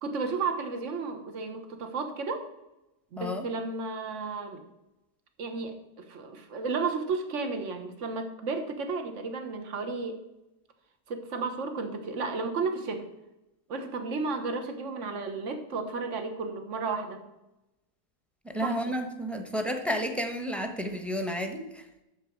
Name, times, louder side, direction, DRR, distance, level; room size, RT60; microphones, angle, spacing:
voice 1, 0.0-2.5 3.1-4.6 5.4-10.2 11.1-13.1 13.7-17.2 18.6-18.8, right 4 dB, 50° right, 7 dB, 1.5 m, -33 dB
voice 2, 18.4-21.9, equal, ahead, 5 dB, 1.0 m, -31 dB
12.5 x 7.2 x 4.6 m, 0.94 s
omnidirectional pair, 1.6 m